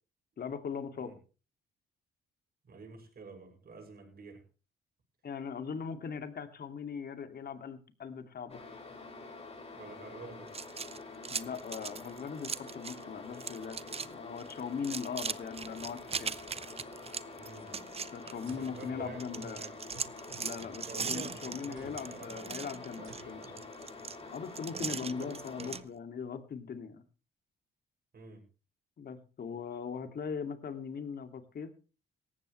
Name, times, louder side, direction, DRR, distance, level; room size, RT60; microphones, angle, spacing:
voice 1, 0.4-1.2 5.2-8.6 11.3-16.4 18.1-19.6 20.4-23.4 24.3-27.0 29.0-31.7, left 6 dB, 50° left, 9 dB, 2.5 m, -40 dB
voice 2, 2.6-4.4 9.7-10.5 17.4-17.7 18.4-19.8 20.8-22.5 23.0-23.7 24.7-25.8 28.1-28.4, right 4 dB, 50° right, 2 dB, 7.4 m, -49 dB
sound 1, 8.5-25.8, left 3 dB, 30° left, 5.7 m, -47 dB
sound 2, 10.5-13.0 13.3-14.1 14.4-18.8 19.2-25.8, right 5 dB, 30° right, 0.9 m, -40 dB
sound 3, 18.5-19.5 19.9-21.2 21.8-22.3 23.1-23.7, right 7 dB, 80° right, 4.1 m, -56 dB
18.0 x 15.0 x 3.3 m, 0.34 s
cardioid pair, 90°, 20 cm